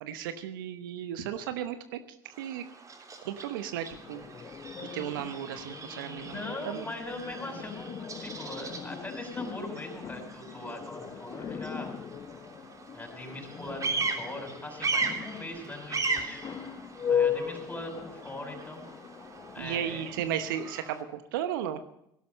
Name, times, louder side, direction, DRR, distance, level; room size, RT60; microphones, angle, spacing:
voice 1, 0.0-2.0 2.4-2.6 3.2-4.3 4.9-6.8 19.6-21.8, right 10 dB, 75° right, 10 dB, 0.9 m, -35 dB
Bird vocalization bird call bird song, 2.3-21.0, right 4 dB, 30° right, 3.3 m, -39 dB
sound 1, 3.9-20.7, left 7 dB, 35° left, 1.1 m, -38 dB
voice 2, 6.2-11.9 12.9-16.4 17.1-18.9 19.5-20.1, left 2 dB, 15° left, 2 dB, 6.3 m, -41 dB
17.5 x 12.0 x 5.3 m, 0.76 s
hypercardioid pair, 65°, 11 cm